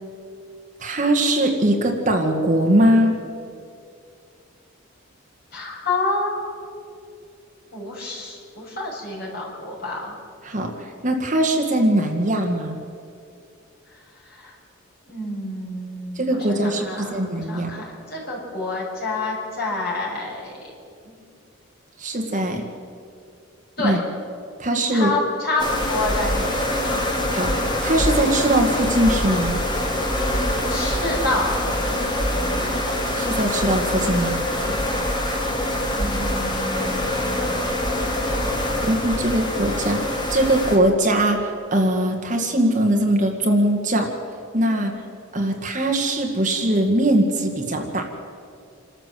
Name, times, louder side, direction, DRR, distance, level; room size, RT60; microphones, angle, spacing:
voice 1, 0.8-3.2 10.4-12.8 16.2-17.7 22.0-22.6 23.8-24.0 24.6-25.1 27.3-29.6 33.1-34.4 38.8-44.1 44.5-44.9 45.3-48.1, right 1 dB, 35° right, 3 dB, 1.9 m, -21 dB
voice 2, 5.5-6.7 7.7-10.2 14.3-14.5 15.1-20.5 21.0-21.1 23.8-24.0 24.9-27.1 30.7-31.5 35.9-37.7 44.7-44.9, left 2 dB, 50° left, -4 dB, 7.0 m, -28 dB
sound 1, 25.6-40.8, left 1 dB, 20° left, 2.1 m, -24 dB
27.5 x 13.5 x 7.7 m, 2.4 s
head